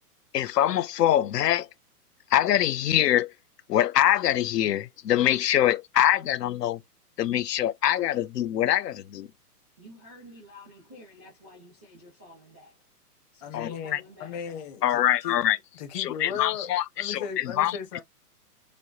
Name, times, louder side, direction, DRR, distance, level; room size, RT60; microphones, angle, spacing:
voice 1, 0.3-1.7 2.3-3.3 3.7-6.8 7.2-9.3 13.5-14.0 14.8-15.6 15.9-17.7, left 12 dB, 85° left, 0.6 m, -24 dB
voice 2, 9.8-13.0 13.3-14.4, left 1 dB, 10° left, 0.4 m, -50 dB
voice 3, 13.4-15.4 15.7-18.0, left 8 dB, 30° left, 0.9 m, -37 dB
5.0 x 2.1 x 2.8 m
hypercardioid pair, 150°, 47 cm